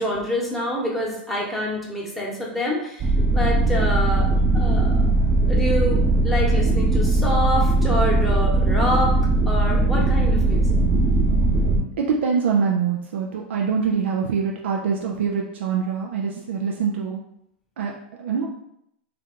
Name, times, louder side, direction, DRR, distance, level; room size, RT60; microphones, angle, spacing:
voice 1, 0.0-5.0 5.5-9.1 9.5-10.8, left 1 dB, ahead, -4 dB, 1.0 m, -27 dB
sound 1, 3.0-11.8, right 2 dB, 35° right, 0.7 m, -19 dB
voice 2, 12.0-17.2 17.8-17.9 18.2-18.5, right 6 dB, 85° right, 0 dB, 0.4 m, -24 dB
2.7 x 2.4 x 3.6 m, 0.74 s
hypercardioid pair, 105°, 6 cm